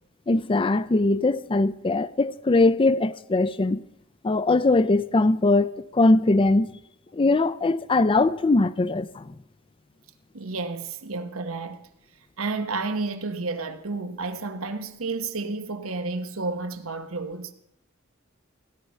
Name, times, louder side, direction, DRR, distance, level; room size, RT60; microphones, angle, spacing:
voice 1, 0.3-3.8 4.2-6.7 7.1-9.3, left 2 dB, 25° left, 0.5 m, -21 dB
voice 2, 10.3-11.9 12.4-17.5, right 3 dB, 90° right, 1.2 m, -31 dB
16.5 x 12.0 x 5.6 m
head